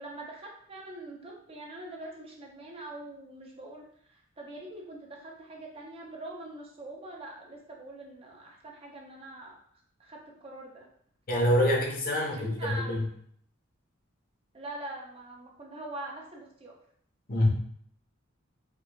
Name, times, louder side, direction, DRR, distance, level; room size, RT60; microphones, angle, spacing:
voice 1, 0.0-9.5 10.0-10.9 12.4-13.0 14.5-16.7, right 1 dB, 30° right, -1 dB, 0.5 m, -43 dB
voice 2, 11.3-13.1 17.3-17.5, left 1 dB, 45° left, -1 dB, 0.7 m, -26 dB
4.5 x 2.3 x 2.5 m, 0.64 s
head